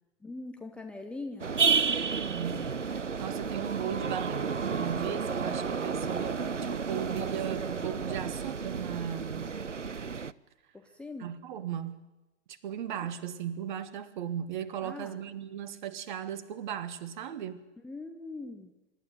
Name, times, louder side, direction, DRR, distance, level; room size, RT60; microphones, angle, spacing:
voice 1, 0.2-1.5 10.7-11.3 13.0-13.1 14.8-15.2 17.8-18.7, left 3 dB, 5° left, 0.7 m, -42 dB
sound 1, 1.4-10.3, right 5 dB, 90° right, 0.7 m, -31 dB
voice 2, 2.1-6.4 6.7-9.5 11.2-12.1 12.5-17.6, right 9 dB, 40° right, 1.5 m, -37 dB
25.0 x 12.0 x 9.4 m
figure-of-eight pair, 115°, 35 cm